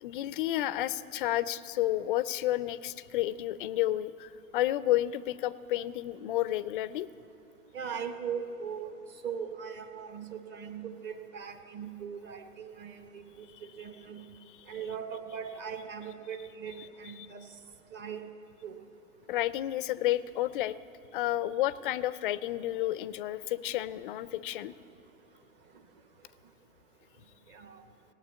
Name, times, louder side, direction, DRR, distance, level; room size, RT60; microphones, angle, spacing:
voice 1, 0.0-7.1 13.5-13.6 19.3-20.8 21.1-24.7, left 14 dB, 40° left, 17 dB, 0.4 m, -31 dB
voice 2, 7.7-8.9 9.2-14.3 14.7-17.5 17.9-18.2 18.6-18.8 27.5-27.8, right 7 dB, 25° right, 7 dB, 0.9 m, -40 dB
17.0 x 9.1 x 8.3 m, 2.8 s
hypercardioid pair, 125°, 43 cm